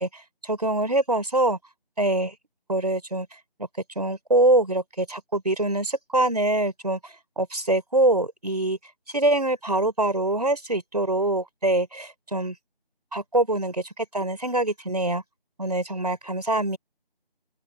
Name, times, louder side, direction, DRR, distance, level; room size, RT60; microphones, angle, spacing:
voice 1, 0.0-1.6 2.0-2.3 2.7-3.3 3.9-8.8 9.1-12.5 13.1-15.2 15.6-16.8, right 2 dB, 40° right, 5.0 m, -24 dB
open air
figure-of-eight pair, 180°, 30 cm